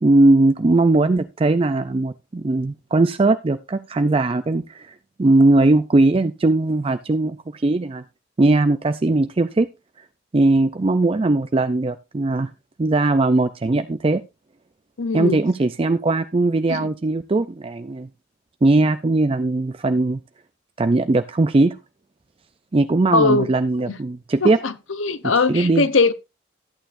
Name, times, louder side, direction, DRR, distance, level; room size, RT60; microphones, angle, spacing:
voice 1, 0.0-4.9 5.2-8.0 8.4-9.7 10.3-12.5 12.8-14.2 15.1-18.1 18.6-20.2 20.8-21.8 22.7-24.6 25.5-25.9, right 2 dB, 30° right, 0.4 m, -19 dB
voice 2, 15.0-15.4 16.7-16.9 23.1-23.5 23.9-24.0 24.4-24.7 25.0-26.1, left 4 dB, 85° left, 0.8 m, -20 dB
13.5 x 8.9 x 2.6 m
head